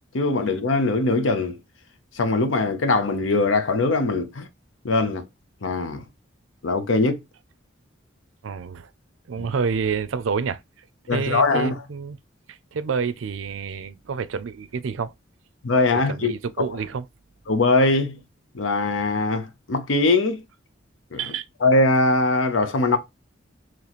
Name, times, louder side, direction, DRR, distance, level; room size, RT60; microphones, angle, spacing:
voice 1, 0.1-1.6 2.2-4.5 4.8-5.2 5.6-6.0 6.6-7.2 9.4-9.5 11.1-11.8 15.6-16.3 17.5-18.2 18.5-20.4 21.1-21.2 21.6-23.0, left 3 dB, 85° left, 0.7 m, -21 dB
voice 2, 8.4-8.9 9.3-10.6 11.1-12.2 12.5-15.1 15.9-17.1 21.2-21.5, right 5 dB, 80° right, 0.4 m, -28 dB
3.0 x 3.0 x 4.0 m
head